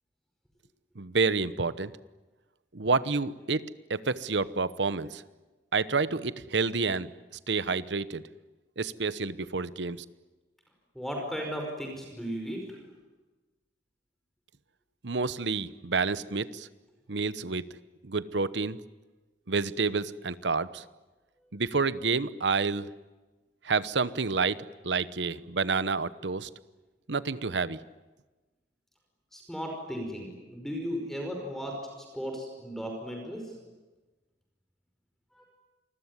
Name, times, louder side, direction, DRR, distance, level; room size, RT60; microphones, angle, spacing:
voice 1, 1.0-1.9 2.7-3.6 3.9-5.2 5.7-7.1 7.5-8.2 8.8-10.0 15.0-16.7 17.1-17.6 18.0-18.8 19.5-20.8 21.5-22.9 23.6-26.5 27.1-27.8, right 4 dB, 80° right, 16 dB, 1.0 m, -29 dB
voice 2, 11.0-12.8 29.3-33.5 35.3-35.5, equal, ahead, 1 dB, 5.3 m, -36 dB
28.0 x 21.0 x 9.8 m, 1.2 s
head